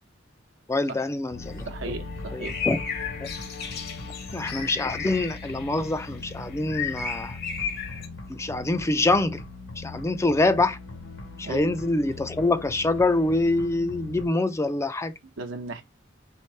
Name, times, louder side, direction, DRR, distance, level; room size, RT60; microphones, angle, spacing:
voice 1, 0.7-1.7 2.3-2.8 4.3-7.4 8.3-9.4 9.8-10.8 11.4-15.1, left 2 dB, 15° left, 0.4 m, -25 dB
sound 1, 1.3-14.3, left 3 dB, 85° left, 1.5 m, -40 dB
sound 2, 1.4-8.1, left 6 dB, 55° left, 0.9 m, -35 dB
voice 2, 1.6-2.6 11.4-11.7 15.4-15.8, right 3 dB, 75° right, 0.9 m, -35 dB
3.4 x 3.2 x 4.4 m
head